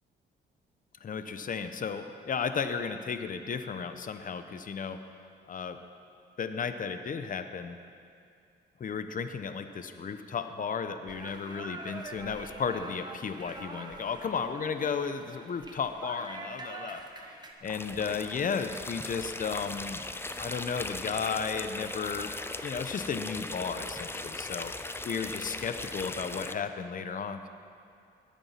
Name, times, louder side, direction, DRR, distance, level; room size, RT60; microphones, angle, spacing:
voice 1, 1.0-5.0 5.5-5.8 6.4-7.8 8.8-17.0 17.3-20.0 20.4-22.3 22.6-27.5, left 6 dB, 45° left, 8 dB, 1.0 m, -34 dB
sound 1, 11.1-17.5, right 2 dB, 20° right, 1.7 m, -45 dB
sound 2, 17.6-26.5, left 2 dB, 10° left, 0.6 m, -39 dB
21.0 x 8.8 x 5.9 m, 2.4 s
cardioid pair, 90°, 20 cm